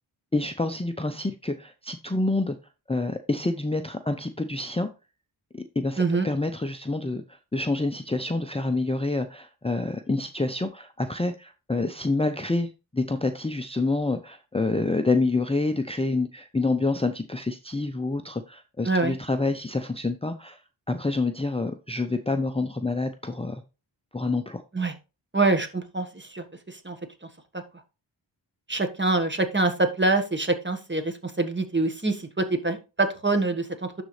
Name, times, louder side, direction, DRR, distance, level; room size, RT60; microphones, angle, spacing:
voice 1, 0.3-2.6 2.9-4.9 5.5-20.6 20.9-23.6 24.1-24.6, left 2 dB, 15° left, 0.7 m, -27 dB
voice 2, 6.0-6.3 18.8-19.2 24.7-24.9 25.3-27.0 28.7-33.9, right 3 dB, 25° right, 1.4 m, -25 dB
11.5 x 4.1 x 3.2 m
cardioid pair, 45°, 46 cm